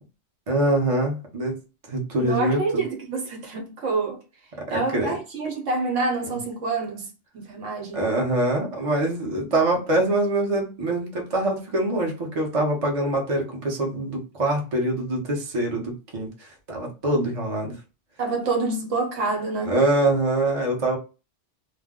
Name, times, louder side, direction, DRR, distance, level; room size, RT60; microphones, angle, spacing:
voice 1, 0.5-1.6 1.9-2.8 4.7-5.1 7.9-17.8 19.6-21.0, right 1 dB, 30° right, 0.7 m, -24 dB
voice 2, 2.2-4.2 4.7-7.1 7.3-8.1 18.2-19.8, right 3 dB, 70° right, 1.1 m, -27 dB
2.5 x 2.2 x 3.6 m
omnidirectional pair, 1.3 m